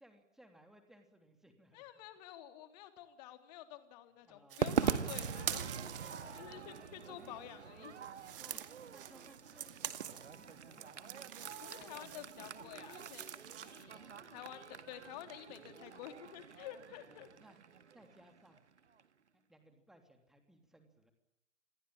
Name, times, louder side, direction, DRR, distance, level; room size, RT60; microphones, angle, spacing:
voice 1, 0.0-1.9 4.2-4.7 6.0-7.3 8.4-8.6 8.9-11.2 11.4-11.7 13.8-14.6 14.9-15.0 17.0-17.6 17.9-18.6 19.3-21.1, right 1 dB, ahead, 5 dB, 3.2 m, -63 dB
voice 2, 1.7-8.0 11.6-14.0 14.3-17.3, left 12 dB, 30° left, 8 dB, 3.5 m, -50 dB
sound 1, 4.5-7.3 7.8-13.8, right 10 dB, 45° right, 2.4 m, -46 dB
Crowd / Fireworks, 4.6-19.0, right 6 dB, 60° right, 2.0 m, -42 dB
28.0 x 21.5 x 8.9 m, 0.79 s
figure-of-eight pair, 125°, 38 cm